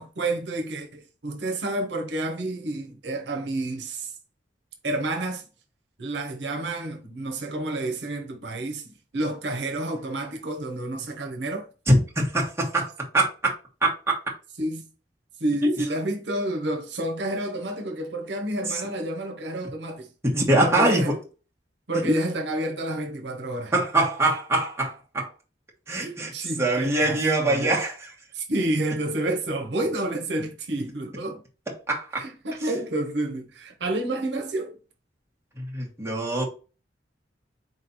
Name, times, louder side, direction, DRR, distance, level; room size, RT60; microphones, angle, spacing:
voice 1, 0.0-4.1 4.8-5.4 6.0-11.7 14.6-14.8 15.4-20.1 20.6-21.1 21.9-23.7 25.9-27.7 28.3-31.4 32.2-34.8, right 1 dB, 75° right, 0.9 m, -29 dB
voice 2, 11.9-13.5 13.8-14.2 15.6-15.7 18.7-18.8 20.2-21.2 21.9-22.2 23.7-25.3 25.9-26.3 26.6-28.1 31.9-32.2 35.5-36.5, right 1 dB, 15° right, 1.2 m, -23 dB
4.1 x 3.2 x 4.0 m
head